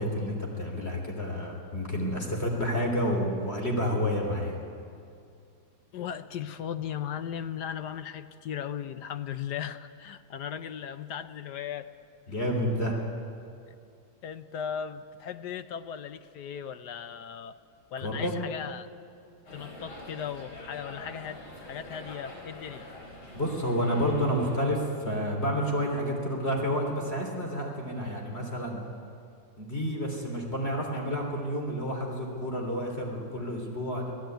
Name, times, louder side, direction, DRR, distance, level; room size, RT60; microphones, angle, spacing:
voice 1, 0.0-4.6 12.3-13.0 18.0-18.4 23.3-28.8 29.6-34.1, equal, 30° left, 1 dB, 3.6 m, -30 dB
voice 2, 5.9-11.9 13.7-13.8 14.2-17.6 17.9-18.9 19.5-22.9, left 8 dB, 65° left, 11 dB, 1.2 m, -37 dB
sound 1, 19.5-24.6, left 1 dB, 90° left, 5.5 m, -45 dB
26.0 x 16.5 x 9.3 m, 2.4 s
omnidirectional pair, 2.3 m